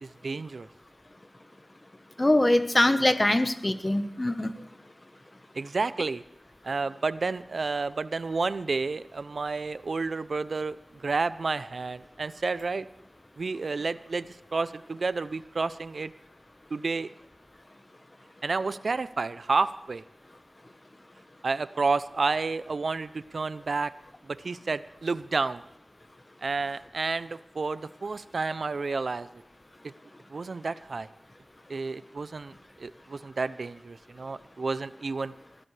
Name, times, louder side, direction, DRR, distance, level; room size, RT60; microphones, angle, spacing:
voice 1, 0.0-0.7 5.5-6.2 6.6-12.9 13.4-16.1 16.7-17.1 18.4-20.0 21.4-23.9 24.2-25.6 26.4-29.3 29.8-29.9 30.3-31.1 31.7-35.3, right 4 dB, 80° right, 15 dB, 0.5 m, -30 dB
voice 2, 2.2-4.5, left 1 dB, 30° left, 9 dB, 1.1 m, -23 dB
23.0 x 15.0 x 3.3 m, 0.76 s
wide cardioid pair, 45°, 0 cm